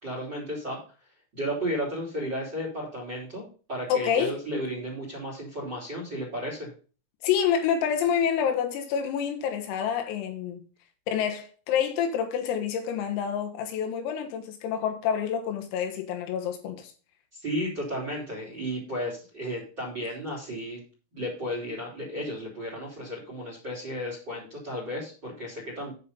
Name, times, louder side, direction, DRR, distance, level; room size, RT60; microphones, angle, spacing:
voice 1, 0.0-0.8 1.3-6.7 17.3-20.8 21.1-25.9, equal, 25° right, 3.5 m, -33 dB
voice 2, 3.9-4.4 7.2-10.6 11.1-16.9, left 8 dB, 90° left, 4.1 m, -27 dB
9.6 x 5.3 x 5.3 m
omnidirectional pair, 5.9 m